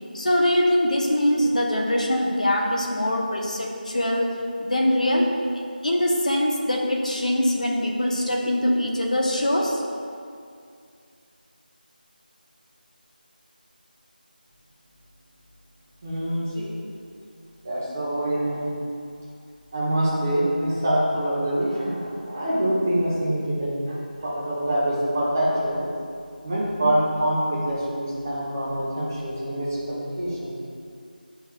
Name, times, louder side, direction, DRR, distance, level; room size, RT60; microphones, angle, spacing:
voice 1, 0.1-5.3 5.8-9.8, left 1 dB, 50° left, 0 dB, 1.0 m, -23 dB
voice 2, 16.0-16.7 17.6-18.7 19.7-23.9 24.2-25.8 26.4-30.6, right 1 dB, 15° right, -8 dB, 1.1 m, -25 dB
9.8 x 5.6 x 2.5 m, 2.3 s
figure-of-eight pair, 170°, 5 cm